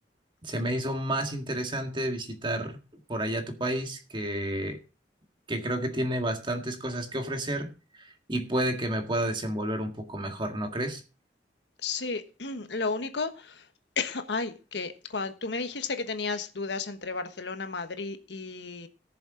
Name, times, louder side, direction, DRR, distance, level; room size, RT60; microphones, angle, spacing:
voice 1, 0.4-2.8 3.1-4.8 5.5-7.7 8.0-11.0, right 1 dB, 30° right, 1.9 m, -30 dB
voice 2, 11.8-13.7 14.0-18.9, left 4 dB, 85° left, 1.3 m, -33 dB
18.5 x 7.1 x 3.8 m
head